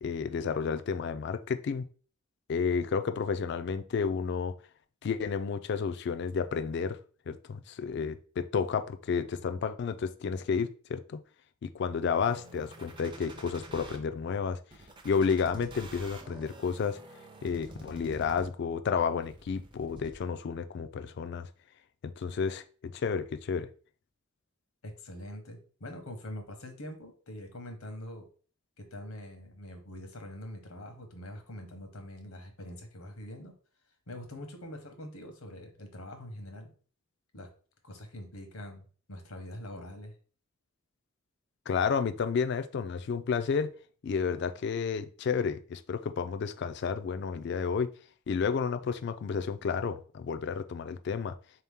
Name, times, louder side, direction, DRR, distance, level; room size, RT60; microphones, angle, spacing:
voice 1, 0.0-1.9 2.5-4.5 5.0-7.0 7.3-11.2 11.6-14.6 15.0-17.0 17.4-21.5 22.0-23.7 41.7-43.7 44.0-47.9 48.3-51.4, left 6 dB, 55° left, 10 dB, 0.3 m, -31 dB
sound 1, 12.2-14.0 14.7-18.7 19.2-20.2, right 1 dB, 20° right, 0.5 m, -48 dB
voice 2, 24.8-28.3 28.8-33.5 34.1-36.7 37.3-37.5 37.8-40.1, left 1 dB, 85° left, 5 dB, 1.0 m, -44 dB
3.9 x 2.9 x 3.5 m, 0.41 s
head